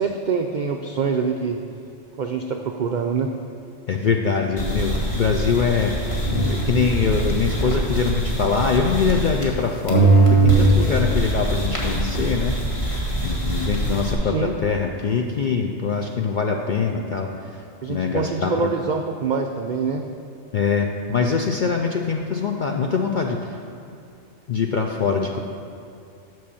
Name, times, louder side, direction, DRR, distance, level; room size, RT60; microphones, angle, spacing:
voice 1, 0.0-1.6 2.2-3.3 14.2-14.6 17.8-20.1, right 5 dB, 80° right, 4 dB, 0.4 m, -25 dB
voice 2, 3.9-12.6 13.2-17.5 17.9-18.5 20.5-23.6 24.5-25.4, left 5 dB, 65° left, 2 dB, 0.5 m, -23 dB
sound 1, 4.6-9.6 9.9-14.1, right 2 dB, 25° left, 1.4 m, -21 dB
7.6 x 6.1 x 6.9 m, 2.6 s
omnidirectional pair, 1.4 m